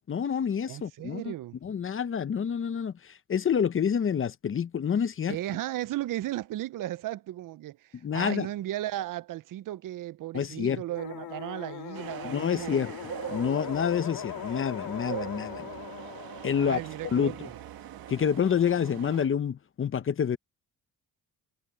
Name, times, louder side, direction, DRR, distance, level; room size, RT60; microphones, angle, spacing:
voice 1, 0.0-1.3 1.6-5.4 8.0-8.5 10.3-10.8 12.2-12.9 13.3-15.7 16.4-17.3 18.1-20.4, left 7 dB, 35° left, 0.8 m, -28 dB
voice 2, 0.7-1.6 5.3-12.9 16.5-17.6, right 14 dB, 65° right, 0.6 m, -35 dB
sound 1, 11.0-17.9, left 12 dB, 70° left, 2.5 m, -41 dB
sound 2, 11.9-19.3, right 12 dB, 85° right, 1.6 m, -42 dB
cardioid pair, 115°, 35 cm